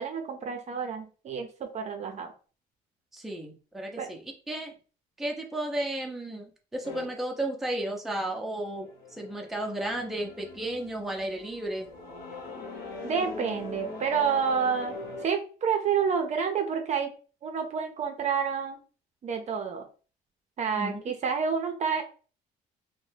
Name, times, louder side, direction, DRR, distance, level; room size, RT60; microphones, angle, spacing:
voice 1, 0.0-2.3 4.0-4.1 13.0-15.0 15.2-17.1 17.4-18.8 19.2-19.8 20.6-22.0, right 6 dB, 45° right, 4 dB, 0.6 m, -29 dB
voice 2, 3.1-4.7 5.2-11.9 20.8-21.0, right 1 dB, ahead, 0 dB, 0.5 m, -33 dB
sound 1, 6.8-7.1 8.2-15.3, left 3 dB, 65° left, 0.9 m, -42 dB
2.7 x 2.1 x 3.2 m, 0.37 s
cardioid pair, 110°, 17 cm